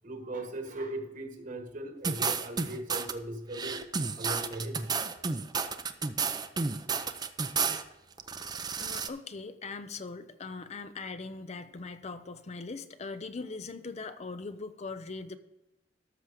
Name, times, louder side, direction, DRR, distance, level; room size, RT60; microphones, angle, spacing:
voice 1, 0.0-3.8 4.2-4.9, right 1 dB, 45° right, 5 dB, 1.4 m, -38 dB
sound 1, 2.0-3.1 3.5-7.8 8.2-9.1, right 5 dB, 25° right, 0.5 m, -31 dB
voice 2, 8.8-15.4, left 4 dB, 40° left, 10 dB, 0.6 m, -40 dB
13.0 x 6.1 x 5.0 m, 0.99 s
head